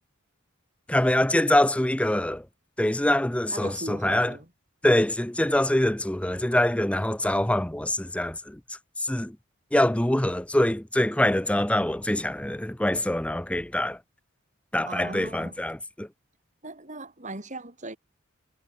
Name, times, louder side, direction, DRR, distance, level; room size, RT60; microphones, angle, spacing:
voice 1, 0.9-2.5 2.8-4.3 4.8-8.6 9.0-9.4 9.7-14.0 14.7-16.1, left 1 dB, 5° left, 0.6 m, -24 dB
voice 2, 3.5-4.5 14.8-15.6 16.6-18.0, right 2 dB, 35° right, 5.2 m, -39 dB
head